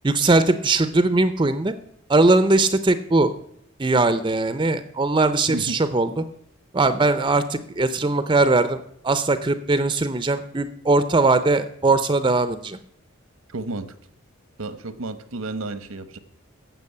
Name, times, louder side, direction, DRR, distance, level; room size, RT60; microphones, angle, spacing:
voice 1, 0.0-1.7 2.1-3.3 3.8-6.2 6.7-12.8, right 2 dB, 20° right, 12 dB, 0.5 m, -20 dB
voice 2, 5.5-5.8 13.5-13.9 14.6-16.2, right 2 dB, 85° right, 13 dB, 1.0 m, -31 dB
15.0 x 6.2 x 8.5 m, 0.71 s
head